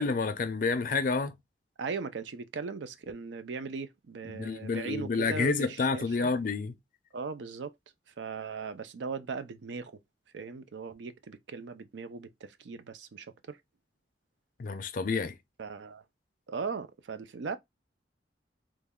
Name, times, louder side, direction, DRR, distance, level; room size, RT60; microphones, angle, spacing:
voice 1, 0.0-1.4 4.3-6.7 14.6-15.3, left 4 dB, 50° left, 0.4 m, -29 dB
voice 2, 1.8-6.3 7.1-7.7 8.2-10.0 10.3-13.6 15.6-16.0 16.5-17.6, right 5 dB, 80° right, 0.4 m, -38 dB
3.1 x 2.2 x 3.5 m
head